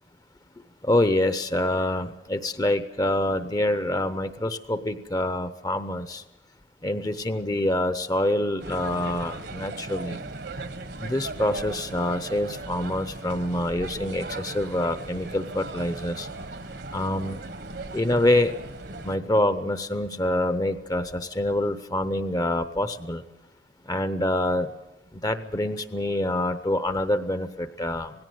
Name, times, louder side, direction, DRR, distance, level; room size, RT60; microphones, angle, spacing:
voice 1, 0.8-6.2 6.8-10.2 11.0-16.3 16.9-17.4 17.9-18.5 19.0-23.2 23.9-24.7 25.1-28.1, left 1 dB, 20° left, 12 dB, 0.8 m, -26 dB
sound 1, 8.6-19.2, right 2 dB, 60° right, 1.3 m, -38 dB
18.0 x 16.5 x 9.3 m, 1.0 s
head